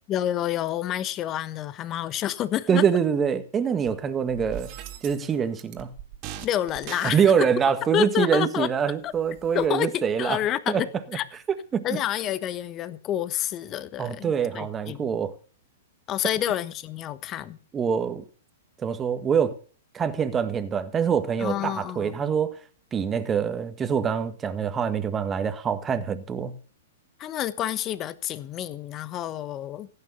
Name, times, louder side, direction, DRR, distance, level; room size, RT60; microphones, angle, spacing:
voice 1, 0.1-2.8 6.4-7.2 7.9-8.7 9.0-9.1 9.5-10.9 11.1-11.2 11.8-15.1 16.1-17.6 21.4-22.3 27.2-29.9, left 11 dB, 30° left, 1.2 m, -29 dB
voice 2, 2.7-4.7 5.0-5.9 7.0-10.4 10.7-10.9 11.7-11.9 14.0-15.4 17.7-18.2 18.8-19.6 19.9-22.6 22.9-26.5, right 7 dB, 20° right, 1.6 m, -25 dB
sound 1, 3.9-4.0 4.3-5.3 5.6-7.5 8.6-8.7 9.0-9.7, right 11 dB, 40° right, 2.1 m, -40 dB
16.5 x 9.4 x 6.9 m
hypercardioid pair, 110°, 0 cm